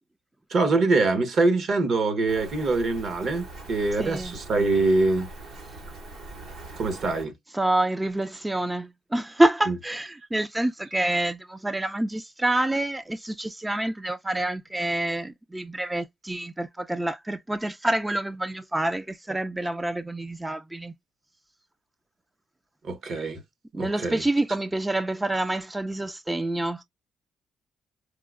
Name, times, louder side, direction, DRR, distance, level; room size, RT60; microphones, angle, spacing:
voice 1, 0.5-5.3 6.8-7.3 9.7-9.8 22.8-23.4 23.7-24.2, right 3 dB, 60° right, 1.0 m, -24 dB
Rain, 2.3-7.3, right 2 dB, 85° right, 2.0 m, -42 dB
voice 2, 4.0-4.4 7.5-20.9 23.7-26.8, right 1 dB, 15° right, 0.3 m, -27 dB
4.6 x 2.1 x 2.3 m
cardioid pair, 90°, 0 cm